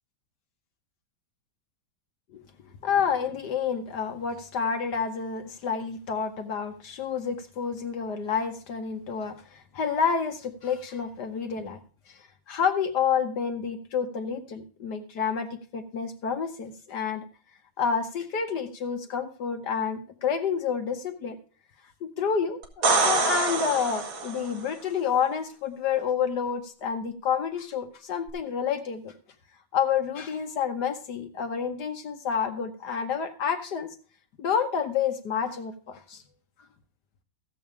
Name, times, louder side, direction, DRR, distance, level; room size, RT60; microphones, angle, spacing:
voice 1, 2.8-11.8 12.1-12.2 12.5-17.2 17.8-21.4 22.0-29.1 29.7-33.9 34.4-36.2, left 7 dB, 60° left, 6 dB, 1.4 m, -29 dB
sound 1, 22.6-24.6 28.3-28.4, right 3 dB, 75° right, 2.4 m, -25 dB
15.0 x 7.1 x 4.7 m, 0.41 s
omnidirectional pair, 2.2 m